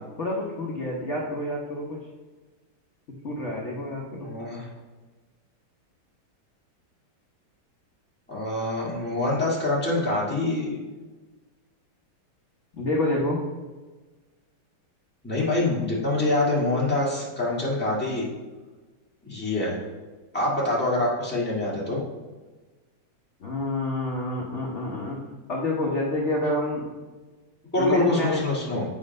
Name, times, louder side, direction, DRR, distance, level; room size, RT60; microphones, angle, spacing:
voice 1, 0.2-2.1 3.2-4.3 12.7-13.4 23.4-25.2 25.5-26.9 27.8-28.4, left 1 dB, 45° left, -3 dB, 0.9 m, -28 dB
voice 2, 4.2-4.7 8.3-10.8 15.2-18.3 19.2-19.8 20.3-22.0 27.7-28.8, left 2 dB, 5° left, -6 dB, 1.5 m, -25 dB
8.3 x 3.8 x 5.2 m, 1.3 s
omnidirectional pair, 2.4 m